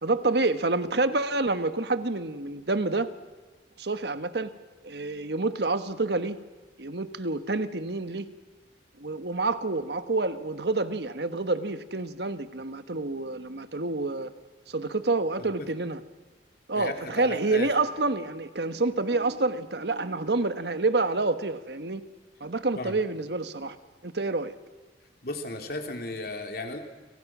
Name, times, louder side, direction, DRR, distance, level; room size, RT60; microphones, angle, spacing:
voice 1, 0.0-3.1 3.8-4.5 4.8-6.4 6.8-8.3 9.0-14.3 14.7-16.0 16.7-22.0 22.4-23.8 24.0-24.5, right 3 dB, 70° right, 11 dB, 1.3 m, -28 dB
voice 2, 16.7-17.7 22.7-23.0 25.2-26.8, left 2 dB, 60° left, 4 dB, 3.3 m, -35 dB
30.0 x 25.5 x 6.1 m, 1.3 s
head